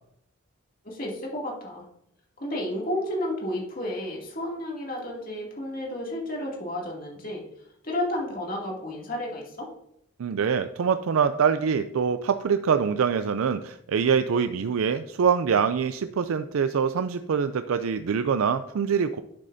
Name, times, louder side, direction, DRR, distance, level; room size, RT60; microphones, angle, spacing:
voice 1, 0.8-1.8 2.4-7.4 7.8-9.7, left 1 dB, 45° left, -2 dB, 2.5 m, -32 dB
voice 2, 10.2-19.2, right 6 dB, 85° right, 10 dB, 0.4 m, -24 dB
11.0 x 7.5 x 2.7 m, 0.77 s
head